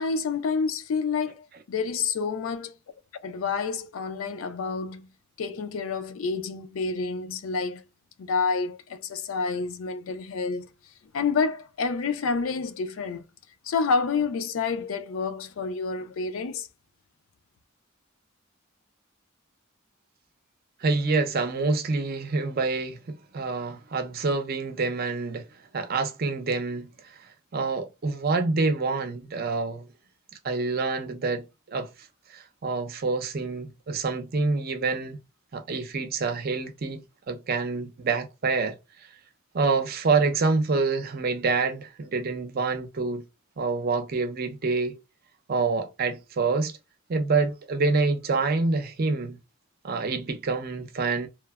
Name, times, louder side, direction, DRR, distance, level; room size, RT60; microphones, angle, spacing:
voice 1, 0.0-2.7 3.2-5.1 5.4-7.8 8.2-10.7 11.1-13.2 13.6-16.7, left 5 dB, 80° left, 0.4 m, -28 dB
voice 2, 20.8-25.5 25.7-27.2 27.5-29.9 30.4-31.9 32.3-35.2 35.5-38.8 39.5-43.3 43.6-45.0 45.5-46.8 47.1-49.4 49.8-51.3, right 4 dB, 50° right, 0.5 m, -27 dB
3.1 x 2.0 x 2.2 m
head